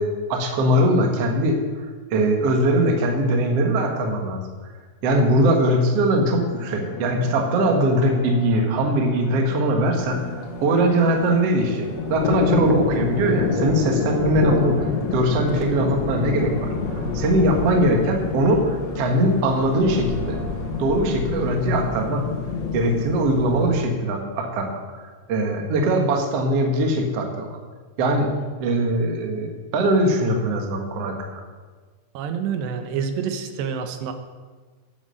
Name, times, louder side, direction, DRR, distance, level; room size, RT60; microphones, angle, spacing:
voice 1, 0.0-1.6 2.1-4.4 5.0-10.3 10.6-20.4 20.8-22.3 22.7-25.0 25.3-27.6 28.0-28.3 28.6-31.4, right 1 dB, 60° right, 3 dB, 1.7 m, -21 dB
sound 1, 6.5-22.0, equal, 30° left, 1.9 m, -38 dB
sound 2, 9.9-23.7, left 5 dB, 60° left, 1.9 m, -27 dB
voice 2, 32.1-34.1, right 7 dB, 85° right, 8 dB, 3.1 m, -27 dB
9.9 x 9.8 x 6.4 m, 1.4 s
omnidirectional pair, 4.9 m